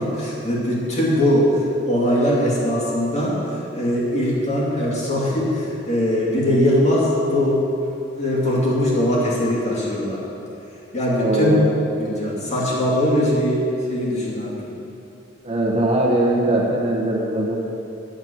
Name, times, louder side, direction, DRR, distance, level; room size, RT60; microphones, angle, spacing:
voice 1, 0.0-3.4 3.7-7.6 8.1-10.2 10.9-11.5 12.0-14.8, equal, 35° left, -6 dB, 2.5 m, -21 dB
voice 2, 11.2-11.6 15.4-17.7, right 1 dB, 30° right, -2 dB, 1.3 m, -21 dB
9.4 x 6.8 x 7.6 m, 2.7 s
head